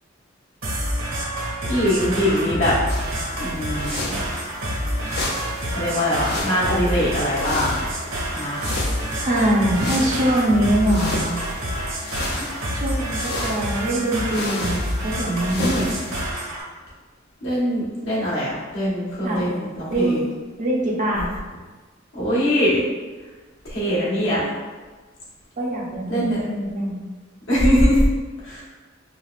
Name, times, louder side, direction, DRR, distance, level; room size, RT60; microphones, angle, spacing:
sound 1, 0.6-16.6, equal, 80° right, 1.3 m, -28 dB
voice 1, 1.6-2.7 3.4-4.2 5.7-7.8 8.3-8.6 12.4-12.5 15.5-15.9 17.4-20.2 22.1-22.8 23.6-24.5 26.1-26.4 27.5-28.1 28.4-28.6, equal, 75° left, -8 dB, 1.3 m, -22 dB
sound 2, 2.9-16.3, left 2 dB, 55° left, 0.5 m, -33 dB
voice 2, 9.2-11.4 12.7-15.7 19.2-19.6 19.9-20.3 20.6-21.3 25.6-27.0, right 1 dB, 40° right, -3 dB, 0.6 m, -23 dB
4.3 x 2.4 x 2.4 m, 1.3 s
head